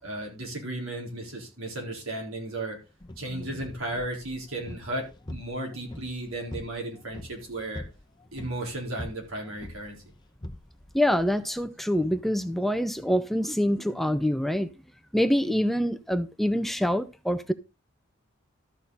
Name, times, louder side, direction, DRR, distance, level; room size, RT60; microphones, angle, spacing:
voice 1, 0.0-2.8 3.2-7.8 8.3-10.0, right 1 dB, 85° right, 4.1 m, -35 dB
sound 1, 3.0-11.7, left 1 dB, 20° left, 0.9 m, -44 dB
voice 2, 10.9-14.7 15.1-17.5, equal, ahead, 0.4 m, -25 dB
13.0 x 6.5 x 4.0 m
head